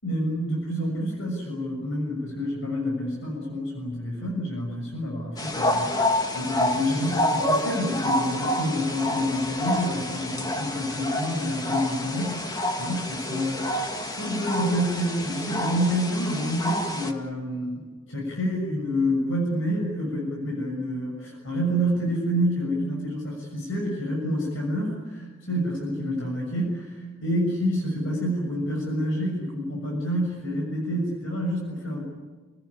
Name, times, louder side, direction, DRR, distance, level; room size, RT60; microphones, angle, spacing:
voice 1, 0.0-32.0, equal, 70° left, -1 dB, 6.7 m, -28 dB
sound 1, 5.4-17.1, left 1 dB, 20° left, 2.0 m, -28 dB
29.5 x 17.0 x 9.9 m, 1.4 s
head